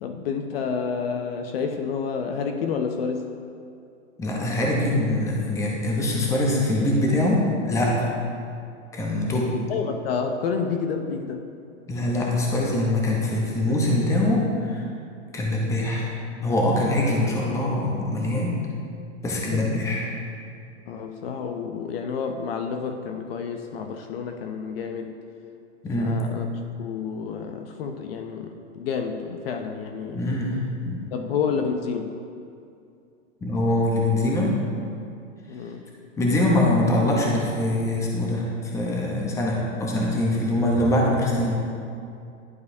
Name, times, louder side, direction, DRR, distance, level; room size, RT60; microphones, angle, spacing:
voice 1, 0.0-3.3 9.7-11.4 19.5-19.6 20.9-25.2 26.0-26.5 26.8-30.2 31.1-32.1 35.5-35.8, left 6 dB, 50° left, 5 dB, 0.5 m, -29 dB
voice 2, 4.2-8.1 8.9-9.5 11.9-14.8 15.3-16.1 16.4-18.6 19.2-20.0 25.8-26.2 30.1-31.0 33.4-34.5 36.2-41.5, left 1 dB, 10° left, -3 dB, 0.7 m, -23 dB
11.0 x 4.6 x 2.6 m, 2.5 s
hypercardioid pair, 145°, 37 cm